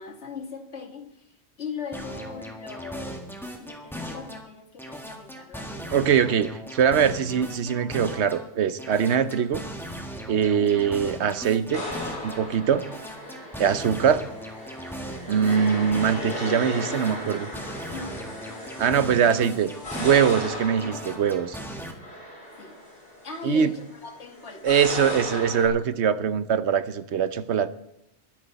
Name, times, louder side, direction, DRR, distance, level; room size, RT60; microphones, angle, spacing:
voice 1, 0.0-6.2 9.1-9.3 10.4-10.7 17.9-19.2 22.6-22.8 23.2-24.7, left 5 dB, 75° left, 5 dB, 1.8 m, -40 dB
sound 1, 1.9-4.5 4.8-8.5 8.8-12.5 12.8-16.5 16.8-20.5 20.8-21.9, equal, ahead, 1.8 m, -38 dB
voice 2, 5.9-9.6 10.3-11.8 12.2-12.8 13.6-14.2 15.3-17.5 18.8-21.6 23.4-23.7 24.6-27.7, right 7 dB, 75° right, 13 dB, 1.1 m, -22 dB
sound 2, 11.7-25.7, left 1 dB, 55° left, 3.8 m, -36 dB
22.0 x 10.5 x 4.1 m, 0.79 s
omnidirectional pair, 1.2 m